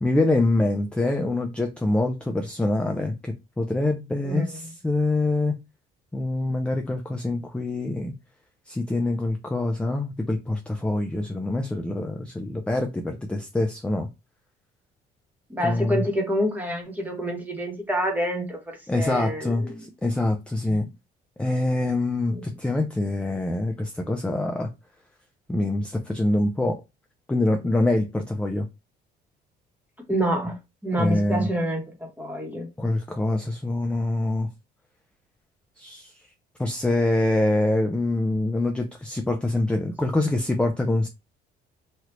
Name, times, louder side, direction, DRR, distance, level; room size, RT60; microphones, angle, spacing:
voice 1, 0.0-5.5 6.1-8.1 8.7-14.1 15.6-16.0 18.9-20.9 21.4-24.7 25.5-26.8 27.3-28.7 31.0-31.5 32.8-34.5 35.8-36.1 36.6-41.1, left 2 dB, 5° left, 0.4 m, -25 dB
voice 2, 4.2-4.7 15.5-19.8 22.3-22.4 30.1-30.6 30.8-32.7, equal, 10° right, 1.1 m, -27 dB
3.2 x 2.4 x 2.9 m
cardioid pair, 110°, 17 cm